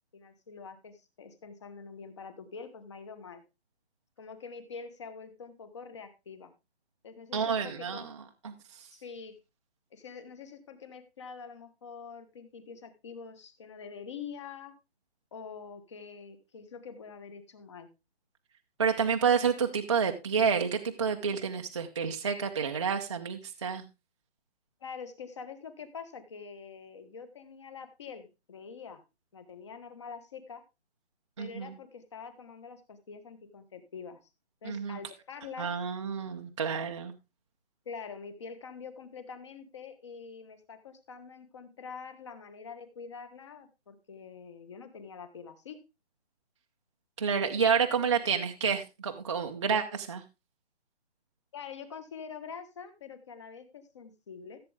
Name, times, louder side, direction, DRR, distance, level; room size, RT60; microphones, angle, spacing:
voice 1, 0.1-3.4 4.2-6.5 7.0-8.1 8.9-9.4 9.9-14.7 15.3-17.9 24.8-29.0 29.3-30.6 31.4-34.2 34.6-35.7 37.8-45.8 48.1-48.2 51.5-54.6, left 6 dB, 25° left, 11 dB, 1.2 m, -45 dB
voice 2, 7.3-8.1 8.4-8.9 18.8-23.8 31.4-31.7 34.6-35.0 35.6-37.1 47.2-50.2, right 6 dB, 25° right, 3 dB, 0.7 m, -29 dB
15.0 x 7.7 x 3.4 m, 0.26 s
hypercardioid pair, 170°, 33 cm